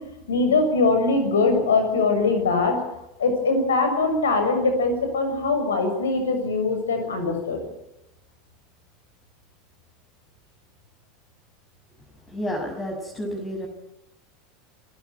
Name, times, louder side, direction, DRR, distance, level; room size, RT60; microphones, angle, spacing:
voice 1, 0.3-2.8 3.2-7.6, left 3 dB, 80° left, 7 dB, 6.9 m, -22 dB
voice 2, 12.3-13.7, equal, 25° left, 2 dB, 6.0 m, -30 dB
27.5 x 16.0 x 9.5 m, 0.89 s
hypercardioid pair, 80°, 0 cm